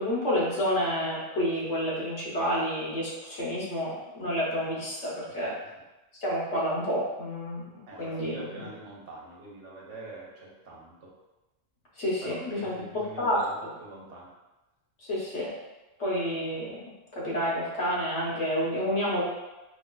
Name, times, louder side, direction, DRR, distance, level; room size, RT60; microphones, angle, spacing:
voice 1, 0.0-5.5 6.2-8.7 12.0-13.7 15.1-15.5 16.0-16.8 17.1-19.2, equal, 70° left, -7 dB, 1.4 m, -29 dB
voice 2, 7.9-11.1 12.2-14.3, right 2 dB, 70° right, -4 dB, 1.2 m, -44 dB
4.8 x 2.4 x 2.3 m, 1.0 s
omnidirectional pair, 1.3 m